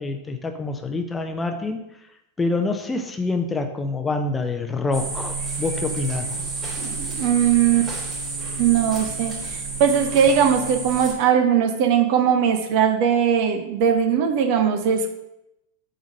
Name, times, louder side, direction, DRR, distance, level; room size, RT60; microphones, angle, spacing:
voice 1, 0.0-1.8 2.4-6.3, left 3 dB, 15° left, 6 dB, 0.8 m, -26 dB
sound 1, 4.9-11.1, right 4 dB, 25° right, 3.2 m, -30 dB
voice 2, 6.8-7.9 8.6-9.3 9.8-15.1, right 8 dB, 45° right, 6 dB, 1.1 m, -19 dB
8.5 x 3.9 x 6.5 m, 0.86 s
figure-of-eight pair, 90°, 0 cm